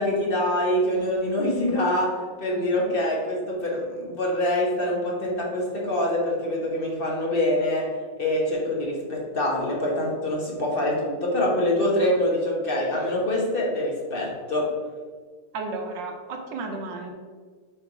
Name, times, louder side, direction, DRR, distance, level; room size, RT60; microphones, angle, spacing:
voice 1, 0.0-7.8 8.2-14.7, left 1 dB, 35° left, -3 dB, 0.9 m, -25 dB
voice 2, 11.9-12.3 15.5-17.1, right 3 dB, 70° right, 3 dB, 1.3 m, -34 dB
6.1 x 3.5 x 4.7 m, 1.5 s
omnidirectional pair, 2.3 m